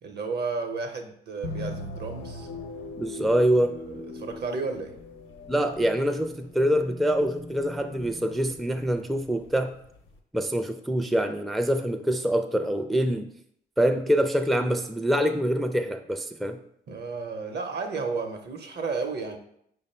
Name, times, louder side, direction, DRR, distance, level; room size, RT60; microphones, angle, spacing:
voice 1, 0.0-2.5 3.8-5.0 16.9-19.4, right 4 dB, 60° right, 5 dB, 0.7 m, -32 dB
sound 1, 1.4-10.2, left 2 dB, 80° left, 0.7 m, -41 dB
voice 2, 3.0-3.7 5.5-9.7 10.3-13.3 13.8-16.6, equal, ahead, 7 dB, 0.4 m, -25 dB
5.0 x 2.1 x 4.3 m, 0.70 s
supercardioid pair, 55°, 19 cm